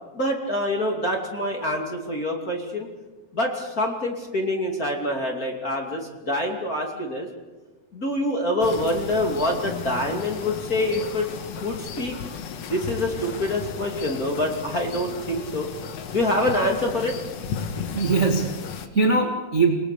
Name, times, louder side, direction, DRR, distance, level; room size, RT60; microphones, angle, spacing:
voice 1, 0.1-2.9 3.3-7.3 7.9-11.3 11.6-12.2 12.7-15.7 16.1-17.1, left 1 dB, 25° left, 1 dB, 2.7 m, -26 dB
sound 1, 8.6-18.9, left 6 dB, 55° left, 2.0 m, -35 dB
voice 2, 17.9-19.7, right 3 dB, 25° right, 1 dB, 1.8 m, -22 dB
28.5 x 20.0 x 6.9 m, 1.2 s
omnidirectional pair, 4.4 m